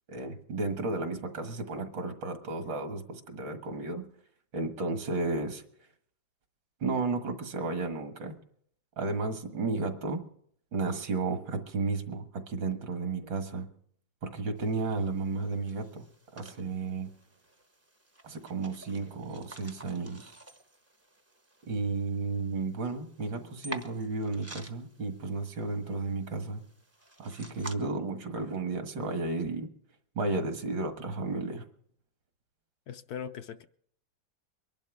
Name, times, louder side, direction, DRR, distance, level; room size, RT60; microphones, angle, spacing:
voice 1, 0.1-4.1 4.5-5.6 6.8-8.4 9.0-10.3 10.7-13.7 14.2-17.1 18.2-20.3 21.7-26.6 27.2-29.7 30.2-31.7, right 3 dB, 75° right, 7 dB, 2.3 m, -33 dB
sound 1, 14.6-27.7, right 2 dB, 15° right, 0.5 m, -50 dB
voice 2, 32.9-33.6, left 8 dB, 65° left, 9 dB, 1.1 m, -40 dB
23.5 x 11.5 x 3.5 m, 0.62 s
omnidirectional pair, 2.0 m